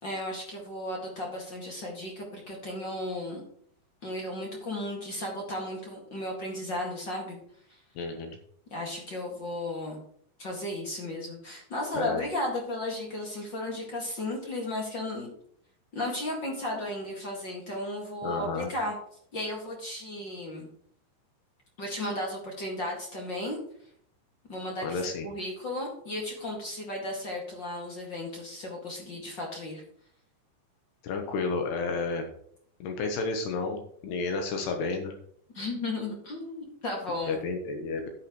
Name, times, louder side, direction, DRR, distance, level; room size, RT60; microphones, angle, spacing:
voice 1, 0.0-3.4 4.0-7.4 8.7-10.0 10.4-15.3 15.9-19.0 19.3-20.7 21.8-23.6 24.5-29.8 35.5-37.4, left 1 dB, 40° left, -1 dB, 1.7 m, -34 dB
voice 2, 8.0-8.4 11.9-12.2 18.2-18.7 24.8-25.3 31.0-32.3 32.8-35.2 37.3-38.1, left 4 dB, 70° left, 4 dB, 3.0 m, -31 dB
10.0 x 9.7 x 3.2 m, 0.64 s
omnidirectional pair, 5.4 m